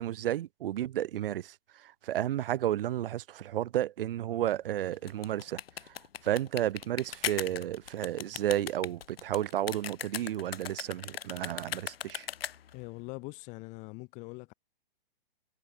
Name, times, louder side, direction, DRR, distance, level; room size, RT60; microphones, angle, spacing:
voice 1, 0.0-12.3, right 12 dB, 70° right, 0.5 m, -32 dB
sound 1, 4.9-12.8, left 9 dB, 85° left, 0.8 m, -39 dB
voice 2, 12.7-14.5, left 27 dB, 25° left, 0.9 m, -43 dB
hypercardioid pair, 140°, 29 cm